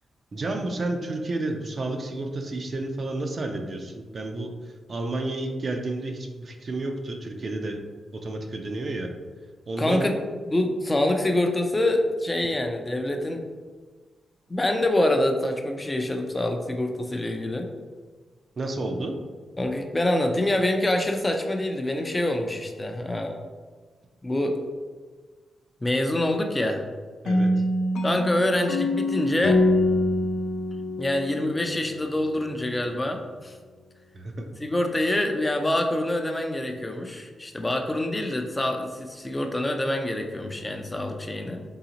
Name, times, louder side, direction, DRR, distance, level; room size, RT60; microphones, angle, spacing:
voice 1, 0.3-4.5 4.9-7.8 8.1-9.1 9.7-10.1 18.6-19.1 27.2-27.5 34.1-34.5, right 2 dB, 40° right, 4 dB, 0.5 m, -31 dB
voice 2, 9.8-10.2 10.5-13.4 14.5-17.7 19.6-23.4 24.2-24.6 25.8-26.8 28.0-29.6 31.0-33.6 34.6-41.6, left 1 dB, 15° left, 4 dB, 0.5 m, -26 dB
sound 1, 27.3-32.1, left 1 dB, 90° left, 0.4 m, -25 dB
4.0 x 3.8 x 2.9 m, 1.4 s
cardioid pair, 110°, 0 cm